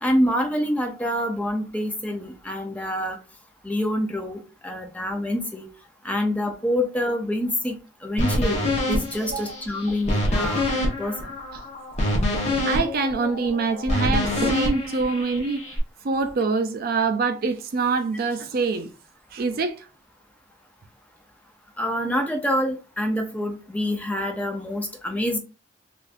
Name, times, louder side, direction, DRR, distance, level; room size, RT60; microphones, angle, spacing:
voice 1, 0.0-3.2 3.6-5.7 6.0-7.8 8.0-10.7 11.0-11.2 21.8-25.4, equal, 10° left, 0.5 m, -26 dB
sound 1, 8.2-15.8, left 1 dB, 35° left, 0.9 m, -26 dB
voice 2, 9.2-9.6 9.9-10.0 11.5-11.6 12.7-15.8 16.0-18.9 19.3-19.9, right 4 dB, 50° right, 0.4 m, -25 dB
3.4 x 2.6 x 2.4 m
head